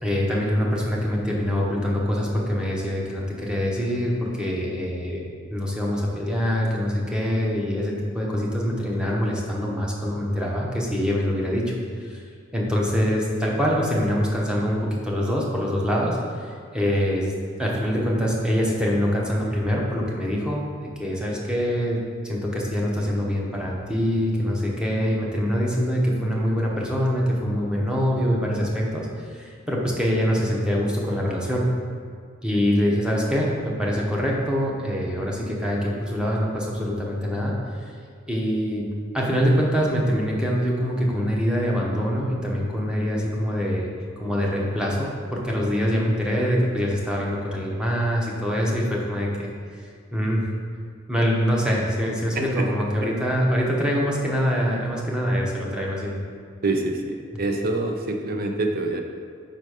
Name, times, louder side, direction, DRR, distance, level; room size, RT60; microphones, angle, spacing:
voice 1, 0.0-5.2 5.5-11.7 12.0-12.2 12.5-17.3 17.6-20.6 21.0-31.6 32.4-37.5 38.3-38.9 39.1-43.9 44.2-49.5 50.1-50.4 51.1-56.2, equal, 5° right, -3 dB, 0.9 m, -24 dB
voice 2, 52.3-52.6 53.0-53.1 56.6-59.0, right 2 dB, 50° right, 3 dB, 0.6 m, -26 dB
5.5 x 3.9 x 4.9 m, 2.2 s
head